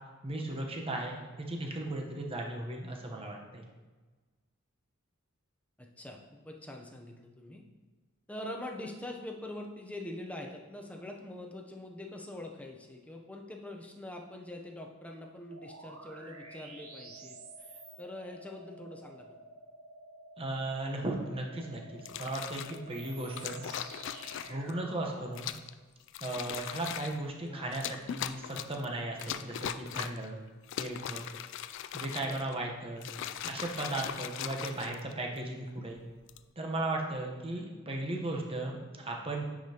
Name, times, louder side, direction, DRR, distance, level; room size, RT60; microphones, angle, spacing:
voice 1, 0.2-3.6 20.4-23.6 24.4-25.5 26.2-30.4 30.8-31.2 31.9-33.1 33.4-36.0 36.6-39.4, right 2 dB, 25° right, 0 dB, 0.9 m, -36 dB
voice 2, 5.8-7.6 8.3-19.4 27.5-28.0 32.1-32.5 33.1-33.4, left 1 dB, 5° left, 1 dB, 0.6 m, -44 dB
sound 1, 15.5-25.4, right 2 dB, 85° right, 0.9 m, -50 dB
Water Shaking in Bottle, 22.0-22.8 23.4-24.7 25.3-25.7 26.1-27.2 27.7-28.8 29.2-30.3 30.6-32.5 33.0-35.4 36.1-36.4, left 10 dB, 60° left, 0.3 m, -39 dB
9.7 x 5.0 x 2.8 m, 1.3 s
head